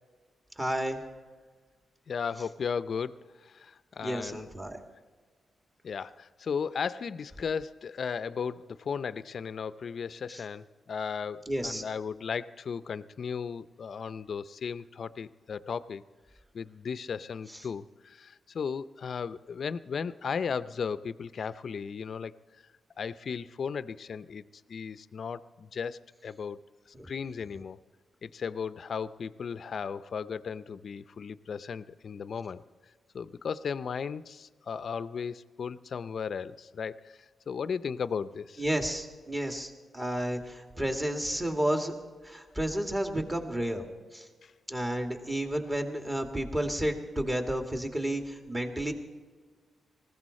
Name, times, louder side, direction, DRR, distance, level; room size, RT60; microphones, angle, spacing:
voice 1, 0.6-1.0 4.0-4.8 10.3-10.4 11.5-11.8 26.9-27.1 38.6-41.9 42.2-43.8 44.1-44.2 44.7-48.9, right 1 dB, 20° right, 4 dB, 2.3 m, -31 dB
voice 2, 2.1-4.5 5.8-16.0 16.5-22.3 23.0-24.4 24.7-26.6 27.0-27.8 28.2-32.6 33.1-37.1 37.5-38.6 44.4-44.5, left 6 dB, 60° left, 15 dB, 0.5 m, -35 dB
19.5 x 15.0 x 4.2 m, 1.5 s
cardioid pair, 65°, 0 cm